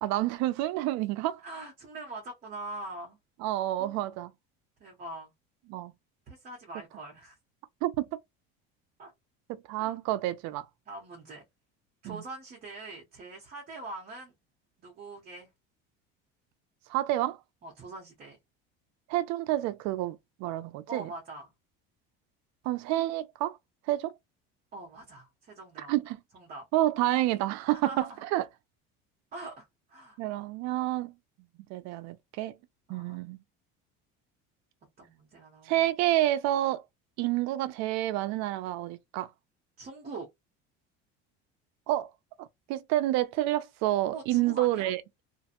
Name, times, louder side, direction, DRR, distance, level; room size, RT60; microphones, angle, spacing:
voice 1, 0.0-1.4 3.4-4.3 5.7-5.9 7.8-8.1 9.5-10.7 12.0-12.2 16.9-17.4 19.1-21.1 22.6-23.6 23.9-24.1 25.9-26.2 26.7-28.4 30.2-31.1 31.7-32.6 32.9-33.4 35.7-36.8 37.2-39.3 41.9-42.1 42.4-45.0, right 15 dB, 65° right, 0.5 m, -29 dB
voice 2, 1.4-3.2 3.8-4.0 4.8-5.3 6.3-7.4 9.0-9.1 9.8-10.0 10.9-11.4 12.0-14.3 14.8-15.5 17.6-18.4 20.9-21.5 24.7-25.9 26.3-26.7 27.7-28.2 29.3-30.2 32.9-33.2 35.0-35.9 39.8-40.3 44.1-44.9, right 2 dB, 30° right, 0.8 m, -43 dB
2.5 x 2.1 x 2.8 m
cardioid pair, 140°, 29 cm